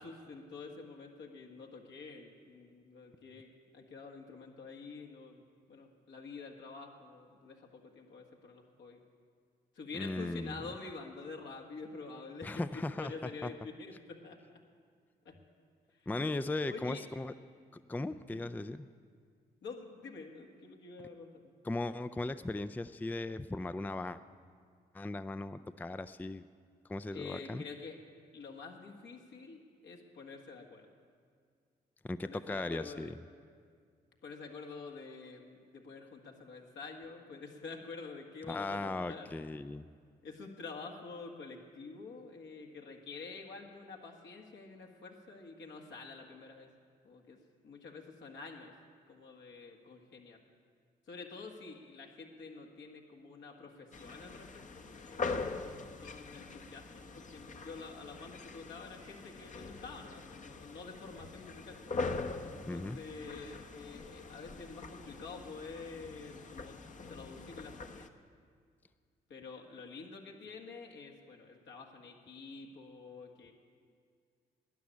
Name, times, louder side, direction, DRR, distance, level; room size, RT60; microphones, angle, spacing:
voice 1, 0.0-5.4 5.7-9.0 9.8-14.4 15.3-15.4 16.6-17.1 18.3-18.5 19.6-21.5 27.1-28.0 28.3-30.9 32.2-33.1 34.2-39.3 40.2-46.7 47.0-47.4 47.6-48.7 49.1-50.4 51.1-55.7 56.0-61.8 62.5-66.8 67.1-68.0 69.3-73.5, left 4 dB, 70° left, 1 dB, 1.8 m, -48 dB
voice 2, 9.9-10.6 12.4-13.1 13.4-13.5 16.1-17.3 17.7-18.9 21.6-24.2 24.9-26.4 26.9-27.6 32.0-33.2 38.5-39.8 62.7-63.0, left 2 dB, 10° left, 12 dB, 0.4 m, -37 dB
sound 1, 53.9-68.1, left 3 dB, 40° left, 1.0 m, -43 dB
12.5 x 10.0 x 8.5 m, 2.1 s
supercardioid pair, 50°, 20 cm